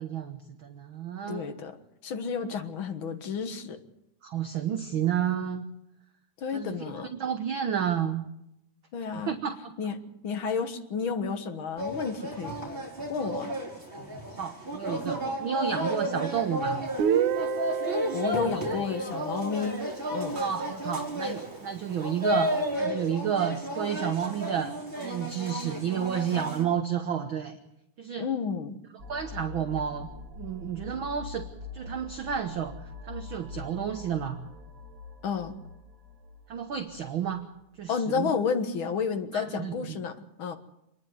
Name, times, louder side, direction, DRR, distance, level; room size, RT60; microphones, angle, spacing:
voice 1, 0.0-1.5 4.2-5.6 6.5-8.3 9.3-9.7 14.3-16.8 18.5-19.0 20.3-24.7 25.0-27.6 28.0-28.3 29.1-30.1 30.4-31.5 31.7-34.4 36.5-37.4 37.8-38.3 39.3-40.0, right 8 dB, 55° right, 5 dB, 1.5 m, -31 dB
voice 2, 1.3-1.8 2.0-3.8 6.4-7.1 8.9-9.4 9.8-10.0 10.2-12.6 13.1-13.5 18.1-19.8 20.1-20.4 28.2-28.8 35.2-35.5 37.9-40.1 40.4-40.6, left 6 dB, 50° left, 8 dB, 1.9 m, -31 dB
sound 1, 11.8-26.6, equal, 15° right, 4.6 m, -33 dB
Guitar, 17.0-20.8, right 8 dB, 85° right, 2.7 m, -31 dB
sound 2, 29.0-37.6, left 4 dB, 40° right, 1.3 m, -44 dB
27.0 x 10.5 x 9.4 m, 0.83 s
omnidirectional pair, 3.4 m